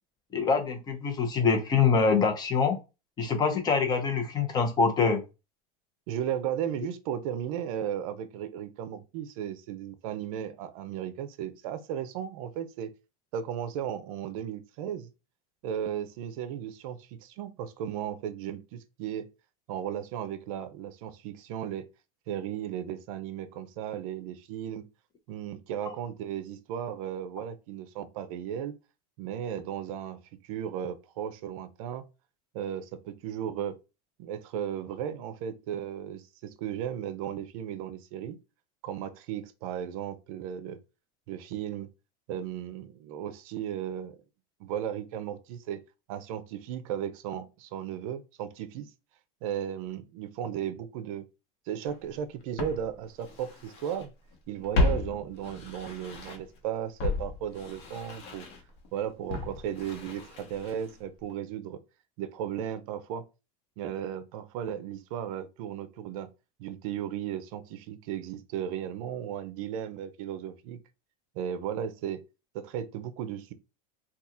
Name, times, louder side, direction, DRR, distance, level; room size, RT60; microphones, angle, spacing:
voice 1, 0.3-2.8 3.2-5.2 25.8-25.9, left 5 dB, 20° left, 0.7 m, -25 dB
voice 2, 6.1-12.9 13.3-15.1 15.6-19.3 19.7-21.9 22.3-24.9 25.3-28.7 29.2-32.1 32.5-33.8 34.2-38.4 38.8-40.8 41.3-41.9 42.3-44.2 44.6-45.8 46.1-48.9 49.4-51.2 51.7-54.1 54.5-58.5 58.9-61.8 62.2-63.3 63.8-66.3 66.6-70.8 71.3-72.3 72.5-73.5, right 9 dB, 65° right, 0.6 m, -35 dB
Walk footsteps, 51.9-52.0 52.6-54.1 54.3-56.6 57.0-61.0 61.3-61.4, left 2 dB, 55° left, 1.0 m, -33 dB
2.8 x 2.3 x 3.7 m
supercardioid pair, 160°, 19 cm